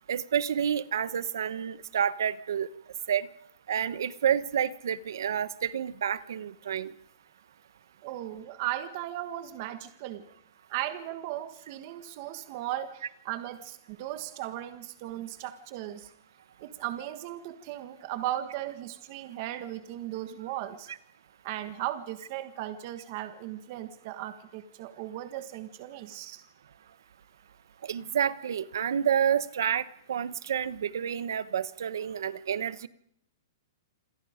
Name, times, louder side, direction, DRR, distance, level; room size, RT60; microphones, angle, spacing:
voice 1, 0.1-2.7 3.1-3.3 3.7-6.9 27.8-32.9, right 8 dB, 65° right, 16 dB, 1.1 m, -29 dB
voice 2, 8.0-10.2 10.7-16.1 16.6-20.9 21.4-26.4, right 13 dB, 30° right, 10 dB, 1.4 m, -37 dB
27.5 x 27.0 x 5.1 m, 0.71 s
hypercardioid pair, 180°, 2 cm